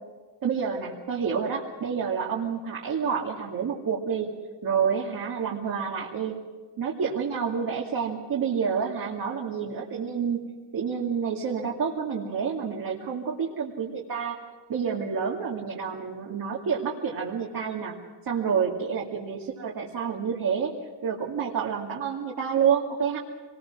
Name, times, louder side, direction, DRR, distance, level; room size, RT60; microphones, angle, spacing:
voice 1, 0.4-4.3 4.6-6.3 6.8-10.4 10.7-14.4 14.7-17.9 18.3-20.7 21.0-23.2, right 6 dB, 55° right, -3 dB, 2.6 m, -28 dB
25.0 x 20.5 x 6.2 m, 1.4 s
cardioid pair, 110°, 42 cm